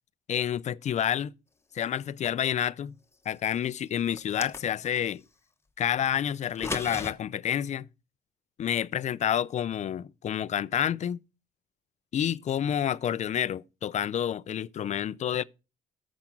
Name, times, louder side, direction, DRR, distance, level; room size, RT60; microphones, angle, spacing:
voice 1, 0.3-1.3 1.7-2.9 3.3-5.2 5.8-7.9 8.6-11.2 12.1-15.4, left 9 dB, 45° left, 0.5 m, -29 dB
sound 1, 4.1-5.0 6.4-7.1, left 3 dB, 15° left, 1.1 m, -36 dB
13.5 x 5.1 x 5.9 m
cardioid pair, 110°, 17 cm